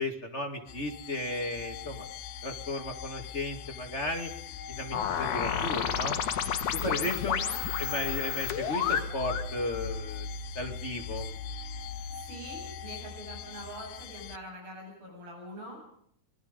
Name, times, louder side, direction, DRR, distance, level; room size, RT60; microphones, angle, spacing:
voice 1, 0.0-2.0 2.4-4.3 4.7-6.2 6.8-7.4 7.8-10.3 10.5-11.3, left 1 dB, 25° left, 4 dB, 1.5 m, -34 dB
sound 1, 0.7-14.4, left 5 dB, 90° left, 3.0 m, -40 dB
sound 2, 4.9-9.5, left 9 dB, 60° left, 2.7 m, -31 dB
voice 2, 6.7-7.6 12.1-15.8, right 1 dB, 75° right, 2 dB, 9.9 m, -44 dB
26.5 x 20.5 x 5.2 m, 0.68 s
omnidirectional pair, 4.3 m